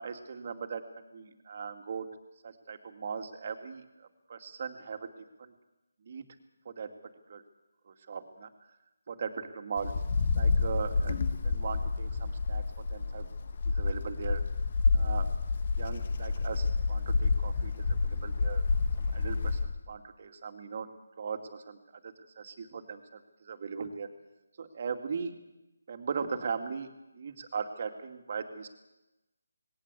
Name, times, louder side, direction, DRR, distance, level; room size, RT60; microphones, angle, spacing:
voice 1, 0.0-2.1 2.4-5.1 5.4-5.5 6.0-6.3 6.6-6.9 7.3-7.4 7.9-8.5 9.1-9.9 10.4-13.3 13.7-14.4 14.9-15.3 15.8-18.6 19.0-20.9 21.2-24.1 24.6-25.3 25.9-28.8, right 5 dB, 40° right, 6 dB, 2.5 m, -39 dB
Wind, 9.8-19.8, left 4 dB, 45° left, 1.6 m, -29 dB
20.0 x 18.0 x 8.3 m, 0.96 s
figure-of-eight pair, 160°, 0 cm